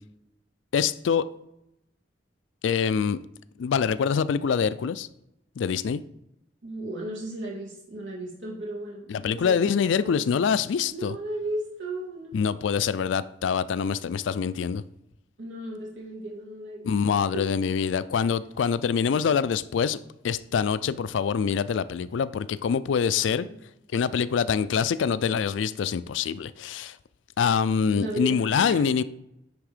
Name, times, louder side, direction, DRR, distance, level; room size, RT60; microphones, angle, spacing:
voice 1, 0.7-1.2 2.6-3.2 3.6-5.1 5.6-6.0 9.1-11.2 12.3-14.8 16.8-20.0 20.2-23.5 23.9-27.0 27.4-29.0, left 6 dB, 75° left, 0.3 m, -25 dB
voice 2, 6.6-10.4 10.9-12.4 15.4-16.9 17.3-17.5 23.1-23.5 27.9-28.8, right 1 dB, 85° right, 2.2 m, -35 dB
9.5 x 3.5 x 4.9 m
head